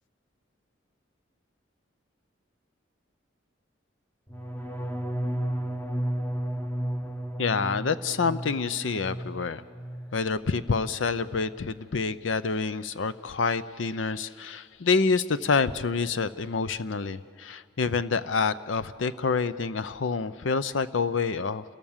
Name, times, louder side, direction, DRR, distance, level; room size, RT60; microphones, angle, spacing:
sound 1, 4.3-10.2 10.5-11.0 11.3-11.7, equal, 10° left, 0.9 m, -33 dB
voice 1, 7.4-9.6 10.1-21.6, left 4 dB, 85° left, 15 dB, 0.7 m, -27 dB
29.5 x 17.5 x 7.3 m, 2.3 s
head